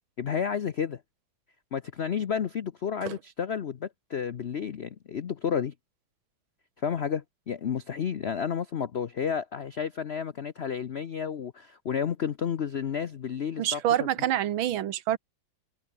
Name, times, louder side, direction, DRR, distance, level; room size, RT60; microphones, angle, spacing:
voice 1, 0.2-1.0 1.7-5.7 6.8-13.8, left 7 dB, 80° left, 0.5 m, -31 dB
voice 2, 13.6-15.2, right 12 dB, 80° right, 1.8 m, -27 dB
omnidirectional pair, 2.2 m